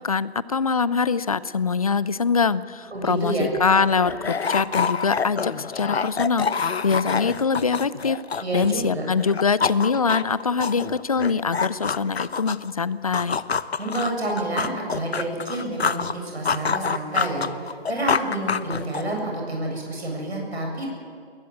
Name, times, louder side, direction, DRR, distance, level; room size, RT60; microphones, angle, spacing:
voice 1, 0.0-13.4, left 5 dB, 35° left, 18 dB, 0.6 m, -23 dB
voice 2, 2.9-3.5 8.4-9.1 13.8-20.9, right 1 dB, 75° right, 0 dB, 7.8 m, -29 dB
sound 1, 3.1-3.2 3.4-8.9 9.2-12.7 13.1-16.1 16.5-19.2, left 5 dB, 75° left, 1.0 m, -27 dB
21.5 x 18.5 x 8.2 m, 2.2 s
figure-of-eight pair, 160°, 32 cm